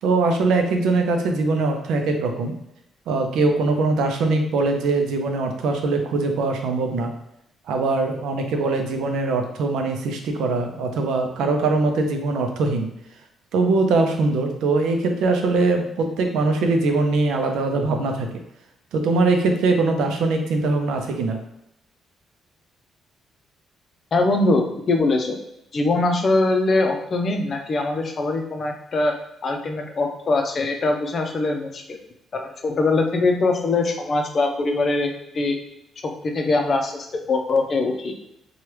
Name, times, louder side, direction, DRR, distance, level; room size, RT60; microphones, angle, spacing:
voice 1, 0.0-2.5 3.1-7.1 7.7-12.9 13.5-18.3 18.9-21.4, right 3 dB, 80° right, 4 dB, 0.5 m, -22 dB
voice 2, 24.1-25.4 25.7-29.1 29.4-32.0 32.3-35.6 36.2-38.1, left 2 dB, 45° left, 3 dB, 0.6 m, -22 dB
2.9 x 2.3 x 3.2 m, 0.81 s
cardioid pair, 90°, 0 cm